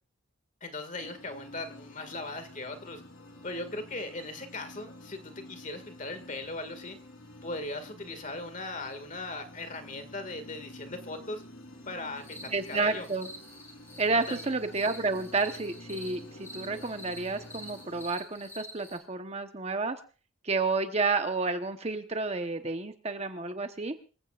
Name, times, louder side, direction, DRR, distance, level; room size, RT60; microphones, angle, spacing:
voice 1, 0.6-3.0 3.4-7.0 7.4-11.4 11.9-13.1 14.3-14.4, left 2 dB, 40° left, 9 dB, 2.0 m, -39 dB
sound 1, 1.0-18.1, left 1 dB, 80° left, 3.8 m, -49 dB
sound 2, 12.1-19.0, equal, 15° left, 2.6 m, -47 dB
voice 2, 12.5-13.3 14.0-20.0 20.4-23.9, right 3 dB, 30° right, 7 dB, 1.0 m, -30 dB
25.5 x 15.5 x 2.5 m, 0.36 s
head